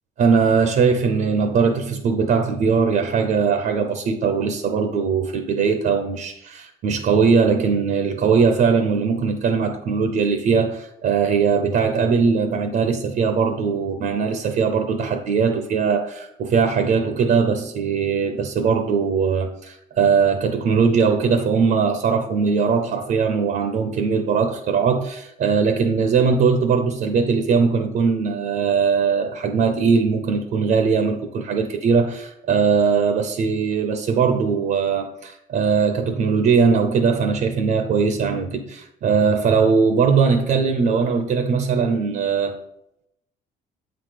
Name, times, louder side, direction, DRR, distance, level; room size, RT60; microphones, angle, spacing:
voice 1, 0.2-42.6, right 5 dB, 60° right, 0.7 m, -20 dB
8.0 x 3.9 x 5.0 m
cardioid pair, 110°, 17 cm